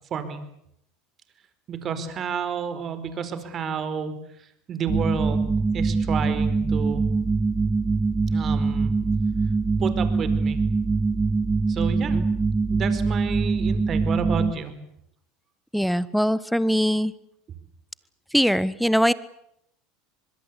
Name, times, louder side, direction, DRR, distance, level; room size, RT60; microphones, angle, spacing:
voice 1, 1.7-4.1 4.7-5.4 5.7-7.0 8.3-8.9 9.8-10.6 11.7-12.2 12.7-14.7, right 6 dB, 40° right, 10 dB, 4.7 m, -30 dB
sound 1, 4.9-14.5, right 4 dB, 20° right, 1.1 m, -23 dB
voice 2, 15.7-17.1 18.3-19.1, equal, ahead, 18 dB, 1.3 m, -22 dB
25.5 x 21.5 x 8.4 m, 0.75 s
hypercardioid pair, 95°, 0 cm